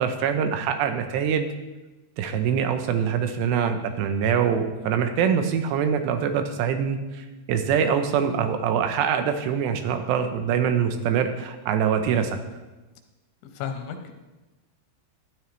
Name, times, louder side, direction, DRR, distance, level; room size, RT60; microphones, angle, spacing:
voice 1, 0.0-1.5 2.2-12.4, right 7 dB, 80° right, 7 dB, 2.7 m, -24 dB
voice 2, 13.4-14.2, left 7 dB, 85° left, 5 dB, 3.1 m, -34 dB
13.0 x 11.0 x 3.2 m, 1.1 s
omnidirectional pair, 5.4 m